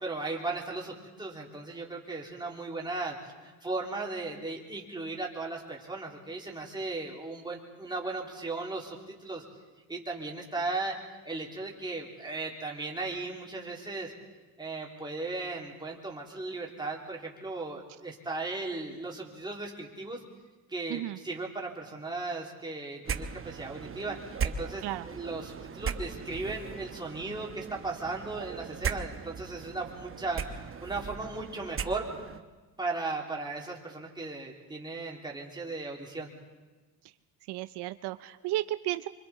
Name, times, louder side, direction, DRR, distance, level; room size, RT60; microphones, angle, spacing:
voice 1, 0.0-3.2 3.4-9.4 9.9-10.9 11.2-14.1 14.6-20.2 20.7-24.2 24.4-32.1 32.8-36.3, right 3 dB, 10° right, -2 dB, 3.0 m, -36 dB
sound 1, 23.0-32.4, right 6 dB, 30° right, 0.9 m, -38 dB
voice 2, 37.5-39.1, right 16 dB, 80° right, 12 dB, 0.7 m, -33 dB
25.5 x 24.5 x 4.2 m, 1.3 s
cardioid pair, 135°, 40 cm